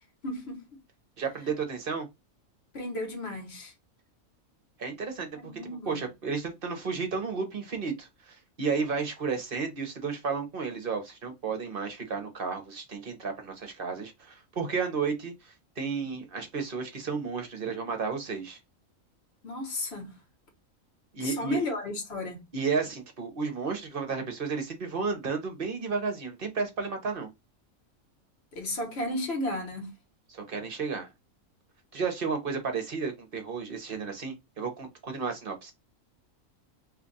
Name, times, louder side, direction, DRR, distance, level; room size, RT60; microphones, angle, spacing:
voice 1, 0.2-0.6 2.7-3.7 5.4-6.0 19.4-20.1 21.2-22.4 28.5-29.9, left 1 dB, 50° left, 1.4 m, -34 dB
voice 2, 1.2-2.1 4.8-5.5 5.9-18.6 21.1-21.6 22.5-27.3 30.3-31.1 31.9-35.7, right 5 dB, 45° right, 0.9 m, -32 dB
2.8 x 2.4 x 3.9 m
omnidirectional pair, 1.4 m